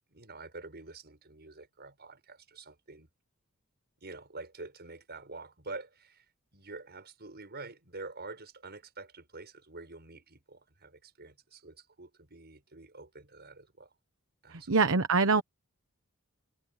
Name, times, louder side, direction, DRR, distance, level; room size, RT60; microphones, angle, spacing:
voice 1, 0.1-3.1 4.0-6.2 6.5-13.9 14.4-14.9, right 3 dB, 50° right, 6.2 m, -47 dB
voice 2, 14.5-15.4, right 4 dB, 65° right, 1.1 m, -24 dB
head